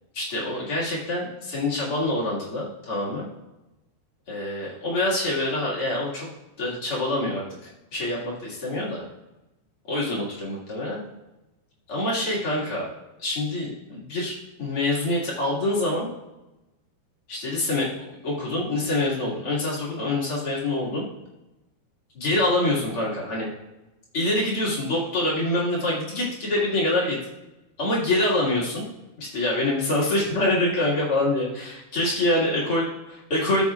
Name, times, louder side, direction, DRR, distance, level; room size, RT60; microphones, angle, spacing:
voice 1, 0.1-3.3 4.3-6.3 6.6-7.4 7.9-9.0 9.9-11.0 11.9-12.9 13.2-16.1 17.3-17.9 18.2-21.1 22.1-23.5 24.1-27.2 27.8-28.8 29.2-33.6, left 1 dB, 45° left, -6 dB, 2.2 m, -25 dB
13.5 x 7.4 x 2.4 m, 1.0 s
omnidirectional pair, 4.8 m